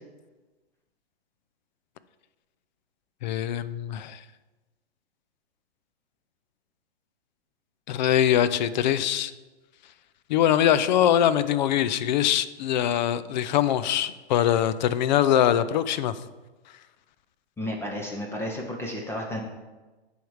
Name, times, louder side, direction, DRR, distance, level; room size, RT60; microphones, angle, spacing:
voice 1, 3.2-4.2 7.9-9.3 10.3-16.1, left 10 dB, 45° left, 14 dB, 0.5 m, -23 dB
voice 2, 17.6-19.4, left 1 dB, 10° left, 0 dB, 0.6 m, -32 dB
10.0 x 3.6 x 4.8 m, 1.2 s
hypercardioid pair, 125°, 32 cm